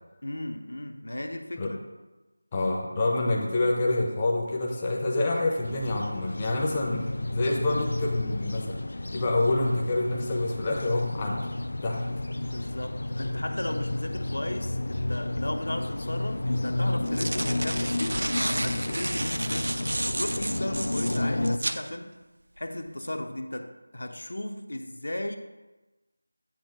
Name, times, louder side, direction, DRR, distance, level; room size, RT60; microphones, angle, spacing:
voice 1, 0.2-1.8 12.4-22.2 22.6-25.4, left 1 dB, 75° left, 0.8 m, -35 dB
voice 2, 2.5-8.8 9.1-11.5 11.8-12.0, left 2 dB, 15° left, 0.6 m, -27 dB
sound 1, 5.6-21.6, left 2 dB, 55° left, 0.3 m, -31 dB
sound 2, 15.8-15.9 16.8-21.8, right 1 dB, 65° right, 0.5 m, -31 dB
8.6 x 3.3 x 6.5 m
figure-of-eight pair, 175°, 0 cm